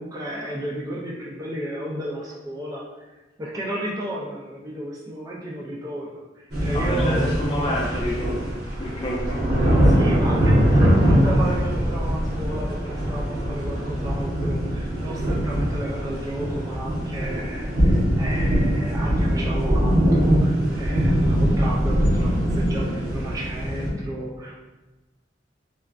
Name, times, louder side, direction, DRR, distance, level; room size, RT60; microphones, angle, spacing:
voice 1, 0.0-7.4 9.8-24.7, right 1 dB, 20° right, -3 dB, 0.3 m, -33 dB
sound 1, 6.5-23.9, equal, 65° right, 1.0 m, -22 dB
voice 2, 6.7-9.4 10.6-10.8, equal, 30° left, -4 dB, 0.6 m, -28 dB
3.1 x 2.4 x 2.3 m, 1.1 s
head